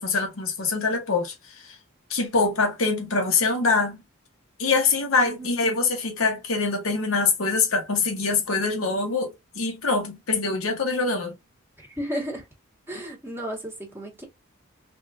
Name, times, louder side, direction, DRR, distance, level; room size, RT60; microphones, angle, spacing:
voice 1, 0.0-1.8 2.1-4.0 4.6-11.3, left 4 dB, 75° left, 1.0 m, -24 dB
voice 2, 5.2-5.6 11.8-12.5 12.9-14.2, equal, 10° right, 1.1 m, -34 dB
3.6 x 2.4 x 2.5 m
head